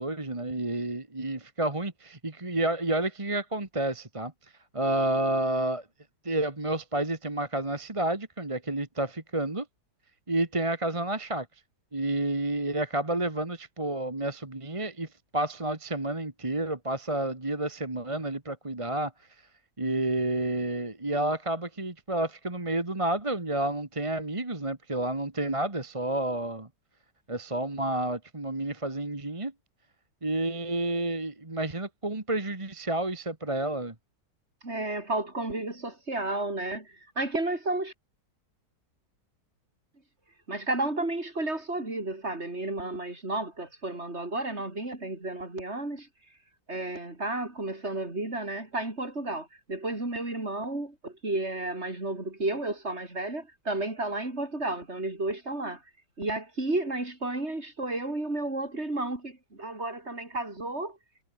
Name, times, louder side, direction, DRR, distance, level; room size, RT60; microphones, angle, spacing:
voice 1, 0.0-5.9 6.2-9.7 10.3-11.5 11.9-19.1 19.8-26.7 27.3-29.5 30.2-33.9, right 1 dB, 20° right, 1.9 m, -30 dB
voice 2, 34.6-37.9 40.5-46.1 46.7-55.8 56.2-61.0, right 2 dB, 40° right, 4.9 m, -32 dB
omnidirectional pair, 1.7 m